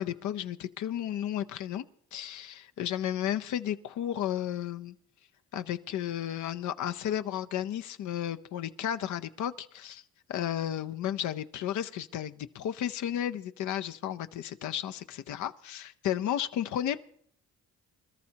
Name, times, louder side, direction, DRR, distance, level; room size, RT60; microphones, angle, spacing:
voice 1, 0.0-1.8 2.1-4.9 5.5-10.0 10.3-17.0, left 10 dB, 70° left, 10 dB, 0.7 m, -33 dB
25.5 x 13.0 x 2.9 m, 0.65 s
cardioid pair, 90°, 30 cm